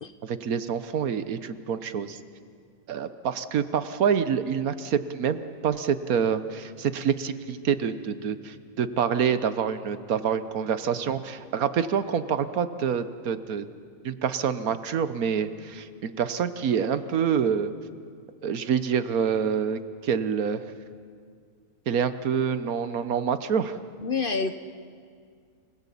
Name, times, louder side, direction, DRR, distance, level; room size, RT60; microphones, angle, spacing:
voice 1, 0.2-2.2 2.9-13.7 14.0-17.7 18.4-20.6 21.9-23.7, right 7 dB, 75° right, 12 dB, 1.4 m, -27 dB
voice 2, 24.0-24.5, left 4 dB, 40° left, 8 dB, 1.0 m, -27 dB
28.5 x 19.0 x 8.5 m, 2.1 s
omnidirectional pair, 1.6 m